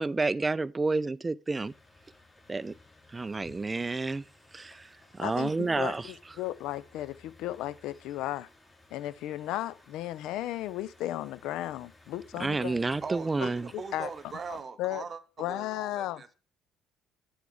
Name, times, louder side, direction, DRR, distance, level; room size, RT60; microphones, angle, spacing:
voice 1, 0.0-1.7 2.5-2.7 3.1-4.2 4.5-4.8 5.2-6.1 12.4-13.6, right 3 dB, 20° right, 0.4 m, -29 dB
sound 1, 1.6-14.6, left 2 dB, 15° left, 4.6 m, -58 dB
voice 2, 5.2-8.5 8.9-13.0 13.4-13.5 13.9-14.1 14.5-15.0 15.4-16.2, left 14 dB, 60° left, 0.4 m, -35 dB
voice 3, 13.0-16.3, right 5 dB, 35° right, 1.0 m, -41 dB
9.1 x 8.8 x 3.5 m
figure-of-eight pair, 50°, 0 cm